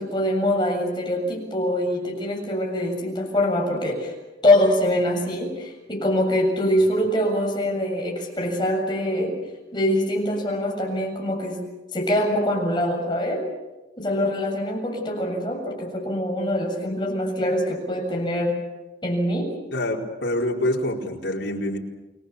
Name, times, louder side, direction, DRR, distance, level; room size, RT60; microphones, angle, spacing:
voice 1, 0.0-4.1 4.4-9.4 9.7-11.6 11.9-13.4 14.0-18.6 19.0-19.5, left 1 dB, 25° left, 0 dB, 7.3 m, -24 dB
voice 2, 19.7-21.8, left 1 dB, 75° left, -1 dB, 4.6 m, -26 dB
29.5 x 22.5 x 7.0 m, 1.1 s
head